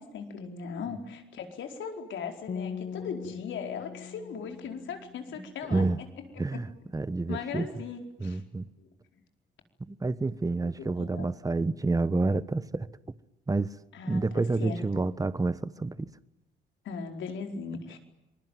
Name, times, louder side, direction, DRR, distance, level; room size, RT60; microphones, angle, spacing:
voice 1, 0.0-5.8 6.3-6.6 7.3-8.4 8.8-8.9 10.6-11.3 13.9-14.8 16.8-18.0, left 6 dB, 70° left, 4.8 m, -38 dB
sound 1, 2.5-5.7, left 6 dB, 45° left, 1.3 m, -41 dB
voice 2, 5.7-6.0 6.4-6.7 6.9-7.6 8.2-8.7 9.8-12.9 13.5-13.7 14.1-16.1, right 3 dB, 15° right, 1.2 m, -28 dB
26.5 x 21.5 x 9.4 m
cardioid pair, 90°, 20 cm